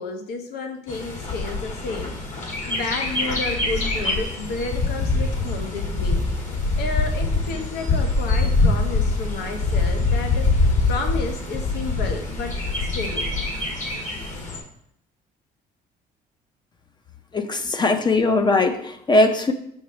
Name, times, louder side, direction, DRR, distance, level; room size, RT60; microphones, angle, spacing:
voice 1, 0.0-2.2 2.7-6.2 6.8-12.5 12.8-13.3, left 3 dB, 75° left, 4 dB, 1.1 m, -31 dB
Bird, 0.9-14.6, left 3 dB, 45° left, 1.6 m, -24 dB
voice 2, 17.3-19.5, left 2 dB, 25° left, 8 dB, 0.6 m, -20 dB
6.4 x 5.9 x 3.1 m, 0.72 s
cardioid pair, 110°, 17 cm